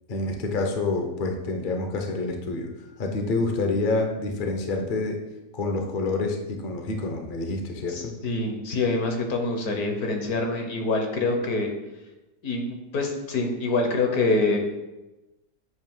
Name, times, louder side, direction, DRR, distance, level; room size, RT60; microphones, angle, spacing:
voice 1, 0.1-2.7 3.0-5.2 5.5-8.1, left 3 dB, 50° left, 3 dB, 0.6 m, -27 dB
voice 2, 7.9-11.7 12.4-14.8, left 3 dB, 65° left, 3 dB, 1.3 m, -25 dB
7.9 x 2.8 x 5.3 m, 1.0 s
omnidirectional pair, 1.8 m